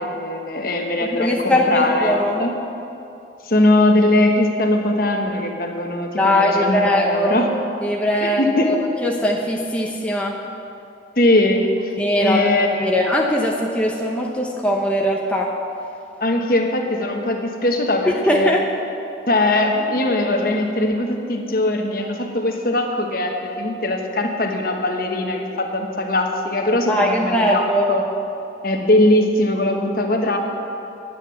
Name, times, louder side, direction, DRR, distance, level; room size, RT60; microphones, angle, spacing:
voice 1, 0.0-2.5 3.4-7.5 8.2-8.7 11.2-11.9 12.2-12.9 16.2-18.5 19.3-26.9 27.2-27.6 27.9-28.0 28.6-30.4, left 1 dB, 50° left, 2 dB, 1.2 m, -20 dB
voice 2, 1.0-2.4 6.2-7.4 7.8-10.4 12.0-15.6 18.1-18.6 26.9-27.9, left 1 dB, 5° left, -2 dB, 0.8 m, -20 dB
10.0 x 9.1 x 7.6 m, 2.8 s
head